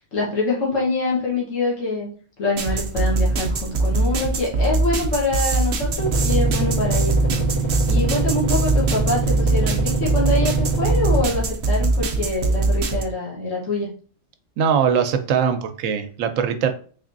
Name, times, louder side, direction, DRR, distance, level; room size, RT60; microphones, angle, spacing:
voice 1, 0.0-2.1 2.4-7.5 7.9-13.9, left 2 dB, 75° left, -4 dB, 1.6 m, -25 dB
sound 1, 2.6-13.0, right 2 dB, 60° right, 0.6 m, -22 dB
sound 2, 6.0-11.2, right 3 dB, 30° left, 0.6 m, -24 dB
voice 2, 14.6-16.7, right 7 dB, 80° right, 8 dB, 0.9 m, -21 dB
3.9 x 3.3 x 2.5 m, 0.42 s
omnidirectional pair, 1.3 m